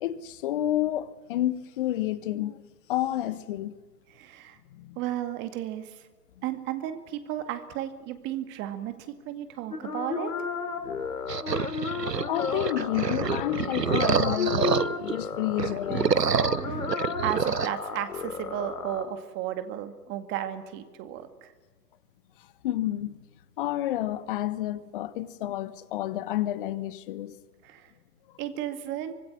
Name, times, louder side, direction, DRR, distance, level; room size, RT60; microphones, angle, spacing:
voice 1, 0.0-2.6 2.9-3.7 4.7-5.0 10.9-11.0 12.3-16.2 22.6-23.2 23.6-27.4, left 13 dB, 35° left, 1.3 m, -30 dB
voice 2, 4.1-4.6 5.0-6.1 6.4-10.3 16.6-16.9 17.2-21.5 27.6-27.9 28.4-29.1, right 12 dB, 25° right, 2.2 m, -34 dB
sound 1, 9.7-19.0, left 5 dB, 65° left, 3.8 m, -33 dB
sound 2, 11.3-15.1 15.5-17.7, right 6 dB, 85° right, 1.0 m, -27 dB
25.5 x 19.5 x 9.7 m
figure-of-eight pair, 125°, 47 cm